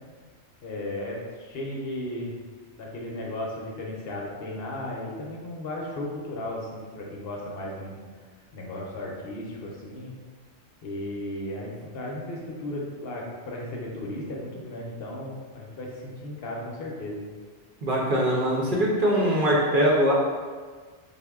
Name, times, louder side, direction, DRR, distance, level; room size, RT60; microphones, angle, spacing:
voice 1, 0.6-2.3 2.7-8.0 8.5-10.1 10.8-17.2, left 1 dB, 65° left, -3 dB, 0.8 m, -35 dB
voice 2, 17.8-20.1, equal, 55° right, -4 dB, 0.7 m, -22 dB
4.0 x 2.1 x 3.5 m, 1.5 s
omnidirectional pair, 1.2 m